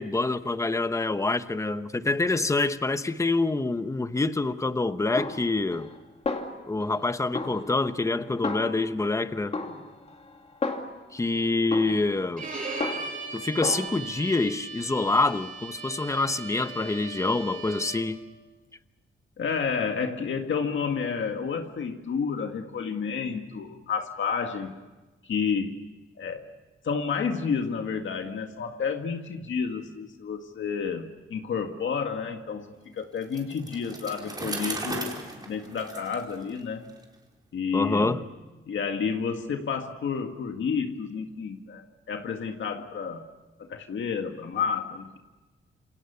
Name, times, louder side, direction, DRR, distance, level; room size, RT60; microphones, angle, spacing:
voice 1, 0.0-5.9 6.7-9.6 11.1-12.5 13.3-18.2 37.7-38.2, left 3 dB, 15° left, 1.0 m, -26 dB
Snare drum, 5.2-6.0 6.3-7.0 7.3-9.1 9.5-11.2 11.7-13.3 13.6-13.9, left 3 dB, 30° left, 2.5 m, -34 dB
Bowed string instrument, 12.4-18.2, right 4 dB, 40° right, 7.7 m, -38 dB
voice 2, 19.4-24.8 25.2-25.8 26.2-26.5 26.8-35.2 35.5-36.9 37.5-38.2 38.7-43.3 43.6-45.2, left 6 dB, 70° left, 1.9 m, -30 dB
Bicycle, 33.2-37.0, right 2 dB, 20° right, 4.3 m, -37 dB
28.5 x 27.5 x 7.0 m
wide cardioid pair, 165°, 21 cm